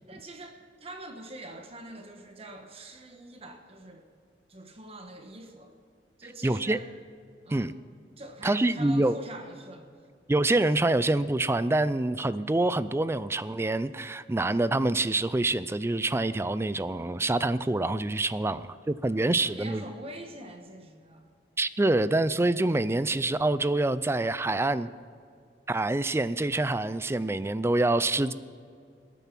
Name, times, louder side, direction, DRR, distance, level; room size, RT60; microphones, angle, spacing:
voice 1, 0.0-4.1 4.5-5.7 6.2-6.9 7.4-7.8 8.2-9.9 18.4-18.6 19.1-21.2, right 1 dB, 35° right, 4 dB, 1.2 m, -44 dB
voice 2, 6.4-6.8 7.5-7.7 8.4-9.2 10.3-19.8 21.6-24.9 25.7-28.3, right 2 dB, 15° right, 15 dB, 0.4 m, -26 dB
21.0 x 9.1 x 6.0 m, 2.3 s
head